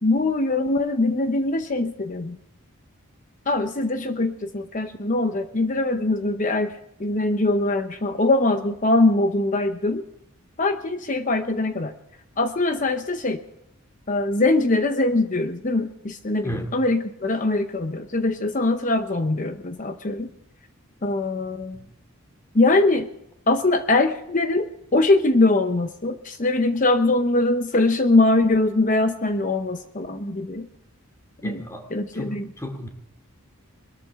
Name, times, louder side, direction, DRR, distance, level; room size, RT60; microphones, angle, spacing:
voice 1, 0.0-2.4 3.5-6.7 7.0-10.0 10.6-11.9 12.4-13.4 14.1-20.3 21.0-21.8 22.5-23.1 23.5-30.7 31.4-31.6 31.9-32.5, left 2 dB, 35° left, 8 dB, 0.8 m, -22 dB
voice 2, 16.4-16.8 21.7-21.9 31.4-31.8 32.1-32.9, equal, 15° left, 3 dB, 2.4 m, -34 dB
22.0 x 13.5 x 3.6 m, 0.79 s
head